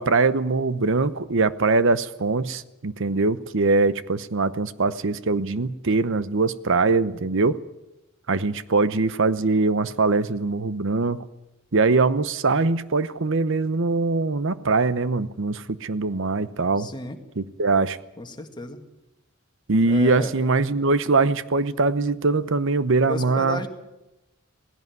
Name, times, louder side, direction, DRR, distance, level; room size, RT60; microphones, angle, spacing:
voice 1, 0.0-7.6 8.3-11.3 11.7-16.9 17.4-18.0 19.7-23.6, right 3 dB, 65° right, 15 dB, 0.8 m, -22 dB
voice 2, 16.8-17.2 18.2-18.8 19.8-20.3 23.1-23.7, left 2 dB, 20° left, 5 dB, 1.9 m, -33 dB
17.5 x 16.0 x 9.4 m, 0.96 s
head